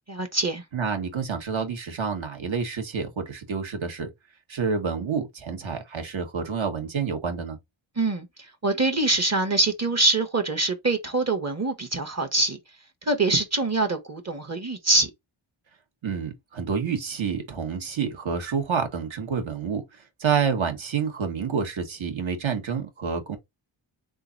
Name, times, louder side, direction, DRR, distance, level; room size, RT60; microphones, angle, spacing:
voice 1, 0.1-0.6 8.0-12.6 13.0-15.1, right 2 dB, 30° right, 1.0 m, -24 dB
voice 2, 0.7-4.1 4.5-7.6 16.0-19.8 20.2-23.4, right 6 dB, 65° right, 1.4 m, -28 dB
3.8 x 2.4 x 3.9 m
wide cardioid pair, 90°, 50 cm